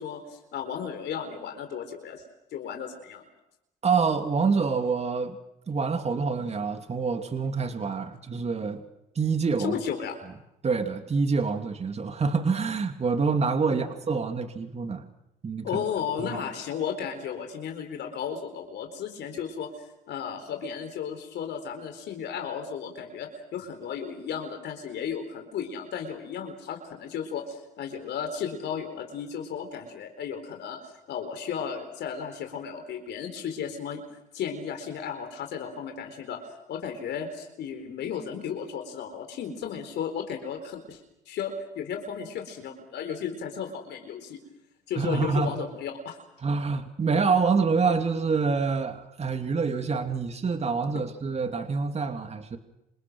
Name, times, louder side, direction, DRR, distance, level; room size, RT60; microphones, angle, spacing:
voice 1, 0.0-2.2 2.5-3.2 9.6-10.2 13.7-13.9 15.6-19.7 20.1-30.8 31.1-34.0 34.3-36.4 36.7-41.0 41.3-44.4 44.9-46.2, left 7 dB, 65° left, 5 dB, 4.3 m, -34 dB
voice 2, 3.8-5.4 5.7-8.8 9.1-9.8 10.6-15.0 15.4-15.8 16.3-16.4 45.0-45.5 46.4-52.6, right 5 dB, 35° right, 6 dB, 2.8 m, -26 dB
29.0 x 27.0 x 6.3 m, 0.88 s
supercardioid pair, 75°, 19 cm